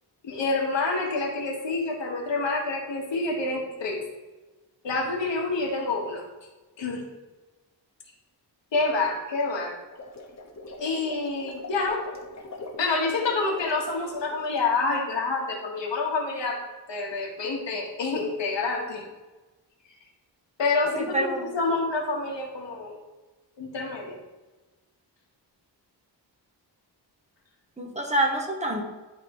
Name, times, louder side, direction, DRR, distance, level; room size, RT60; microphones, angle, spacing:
voice 1, 0.2-4.0 4.8-6.2 6.8-7.0 8.7-9.7 10.8-12.0 12.8-16.6 16.9-19.0 20.6-22.9 23.6-24.2, left 3 dB, 80° left, 0 dB, 1.6 m, -27 dB
sound 1, 9.8-14.7, left 2 dB, 40° left, 1.2 m, -42 dB
voice 2, 21.0-21.5 27.8-28.8, right 1 dB, 15° right, 1 dB, 1.0 m, -26 dB
11.5 x 3.9 x 3.1 m, 1.2 s
wide cardioid pair, 120°, 43 cm